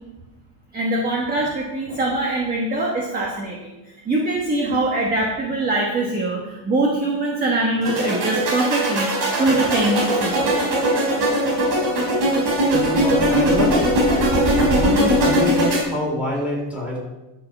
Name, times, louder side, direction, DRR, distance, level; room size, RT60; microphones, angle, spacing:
voice 1, 0.7-3.7 4.0-9.1 9.4-10.5, right 2 dB, 20° right, -1 dB, 1.4 m, -23 dB
sound 1, 7.8-15.8, equal, 40° right, 4.2 m, -20 dB
voice 2, 12.5-13.9 14.6-17.0, equal, 5° right, -4 dB, 3.7 m, -25 dB
13.0 x 5.8 x 6.0 m, 1.0 s
cardioid pair, 160°, 48 cm